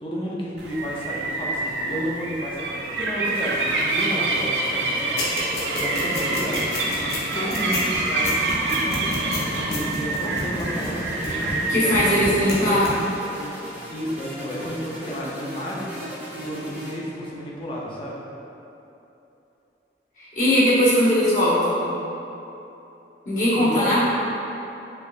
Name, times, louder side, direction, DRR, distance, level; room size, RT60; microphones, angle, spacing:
voice 1, 0.0-12.8 13.9-15.9 16.4-18.2 23.6-23.9, equal, 30° left, -5 dB, 0.5 m, -32 dB
sound 1, 0.6-13.1, right 2 dB, 80° right, 0.5 m, -27 dB
sound 2, 3.2-16.9, equal, 10° right, 0.9 m, -37 dB
sound 3, 5.2-11.7 11.9-12.6 12.8-12.9, left 2 dB, 65° left, 0.8 m, -29 dB
voice 2, 11.7-12.9 20.2-21.9 23.2-24.0, equal, 45° left, -11 dB, 1.1 m, -19 dB
4.5 x 3.2 x 2.5 m, 3.0 s
head